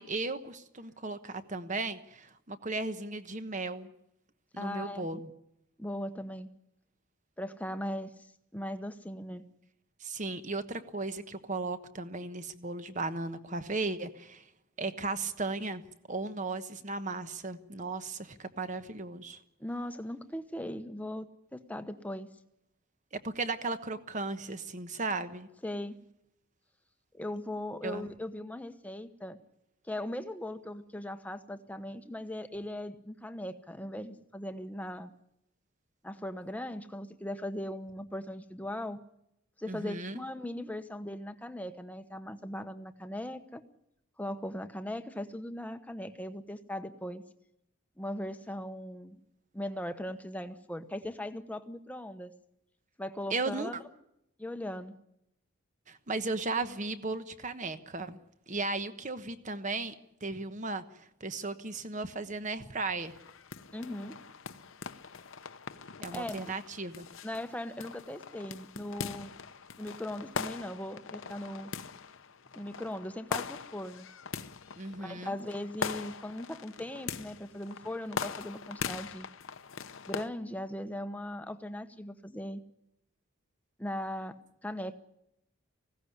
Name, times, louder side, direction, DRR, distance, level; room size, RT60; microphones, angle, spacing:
voice 1, 0.0-3.9 4.5-5.3 10.0-14.4 14.8-15.8 16.1-19.4 23.1-25.5 27.8-28.1 39.7-40.2 53.3-53.7 55.9-58.2 58.5-59.9 60.2-60.8 61.2-63.2 66.0-67.1 74.8-75.4, right 3 dB, 35° right, 11 dB, 1.1 m, -36 dB
voice 2, 4.6-5.2 5.8-6.5 7.4-9.5 19.6-21.3 21.5-22.3 25.6-25.9 27.1-29.4 29.8-35.1 36.0-39.0 39.6-43.6 44.2-47.2 48.0-49.2 49.5-52.3 53.0-53.8 54.4-55.0 63.7-64.2 66.1-66.4 67.2-69.3 69.8-71.7 72.5-74.1 75.0-79.3 80.1-82.6 83.8-84.4 84.6-84.9, left 1 dB, 5° left, 9 dB, 0.9 m, -39 dB
sound 1, 63.0-80.3, left 5 dB, 65° left, 0.9 m, -41 dB
19.5 x 16.5 x 9.9 m, 0.81 s
head